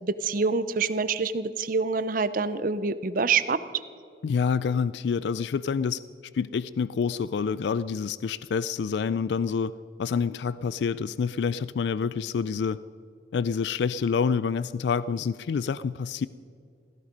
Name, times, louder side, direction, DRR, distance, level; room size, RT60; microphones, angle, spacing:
voice 1, 0.0-3.6, right 4 dB, 50° right, 14 dB, 0.7 m, -26 dB
voice 2, 4.2-6.0 6.3-9.7 10.0-12.8 13.3-16.3, left 6 dB, 75° left, 17 dB, 0.3 m, -27 dB
16.5 x 16.0 x 5.2 m, 2.4 s
head